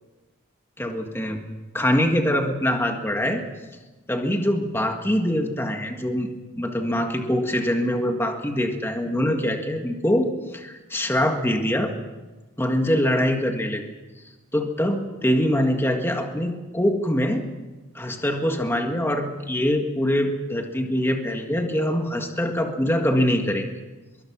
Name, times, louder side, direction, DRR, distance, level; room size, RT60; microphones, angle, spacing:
voice 1, 0.8-1.4 1.7-3.4 4.1-6.3 6.6-11.9 12.6-13.8 14.5-17.4 17.9-23.7, equal, 10° left, 4 dB, 1.8 m, -23 dB
24.0 x 22.5 x 6.2 m, 1.2 s
head